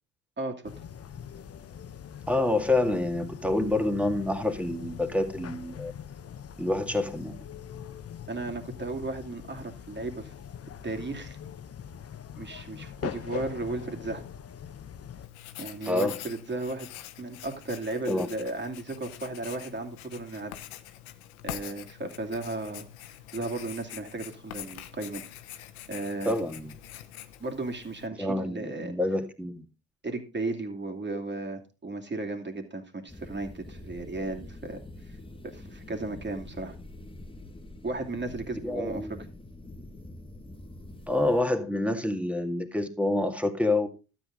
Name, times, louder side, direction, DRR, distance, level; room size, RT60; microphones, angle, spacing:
voice 1, 0.4-0.7 8.3-10.3 10.8-11.4 12.4-14.2 15.6-16.9 17.2-20.5 21.4-22.9 23.3-25.3 25.5-26.3 27.4-28.9 30.0-34.8 35.1-35.2 35.4-36.8 37.8-39.1, right 2 dB, 25° right, 3 dB, 2.7 m, -35 dB
sound 1, 0.6-15.3, left 8 dB, 35° left, 0.9 m, -42 dB
voice 2, 2.3-5.9 6.6-7.3 15.9-16.2 18.1-18.3 26.3-26.7 28.2-29.7 38.6-39.2 41.1-43.9, left 2 dB, 5° right, 6 dB, 2.1 m, -27 dB
Writing, 15.2-28.1, left 12 dB, 85° left, 1.0 m, -45 dB
sound 2, 33.1-41.4, left 1 dB, 10° left, 1.6 m, -45 dB
12.5 x 8.6 x 3.8 m, 0.32 s
hypercardioid pair, 55°, 42 cm